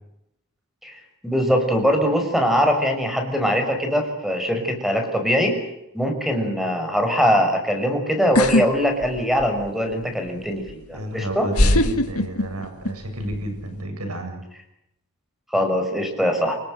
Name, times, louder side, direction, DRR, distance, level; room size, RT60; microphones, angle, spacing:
voice 1, 0.8-5.6 5.9-11.5 15.5-16.6, equal, ahead, 5 dB, 6.2 m, -22 dB
sound 1, 8.3-8.7 9.0-9.7 10.7-10.8 11.5-12.9 13.2-13.6, left 1 dB, 80° left, 2.0 m, -19 dB
voice 2, 10.9-14.4, right 1 dB, 80° right, 6 dB, 7.9 m, -31 dB
29.0 x 18.5 x 8.0 m, 0.83 s
head